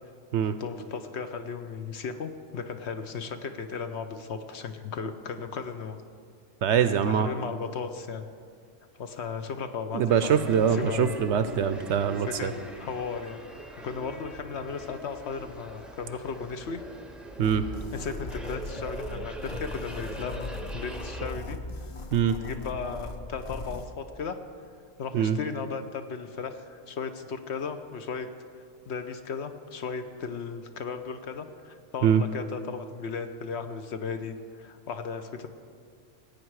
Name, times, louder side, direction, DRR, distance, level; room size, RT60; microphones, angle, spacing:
voice 1, 0.4-6.0 7.1-8.3 9.0-11.1 12.3-13.4 13.8-16.8 17.9-21.9 22.3-24.4 25.0-28.3 28.9-35.5, left 5 dB, 60° left, 8 dB, 0.9 m, -36 dB
voice 2, 6.6-7.3 9.9-12.5 17.4-17.6 22.1-22.3 25.1-25.4 32.0-32.2, right 8 dB, 65° right, 11 dB, 0.8 m, -23 dB
sound 1, 10.1-21.3, right 1 dB, ahead, 0.6 m, -42 dB
sound 2, 17.4-23.9, left 2 dB, 40° left, 0.5 m, -39 dB
17.0 x 8.7 x 4.7 m, 2.2 s
omnidirectional pair, 1.4 m